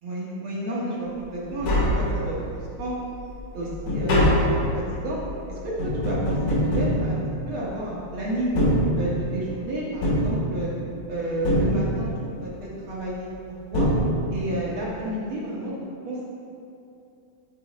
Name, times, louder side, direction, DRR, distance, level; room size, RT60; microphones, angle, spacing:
voice 1, 0.0-2.9 3.5-5.2 5.5-5.6 5.8-8.6 8.9-10.7 11.1-13.3 13.7-13.9 14.3-15.7 16.0-16.3, right 1 dB, 60° right, -6 dB, 1.5 m, -31 dB
Tap, 1.2-1.3 1.5-2.6 3.0-7.8 8.4-9.5 10.0-11.0 11.4-12.3 13.3-13.4 13.7-14.6 14.8-14.9, equal, 85° left, 3.4 m, -24 dB
10.5 x 4.2 x 4.1 m, 2.6 s
omnidirectional pair, 3.3 m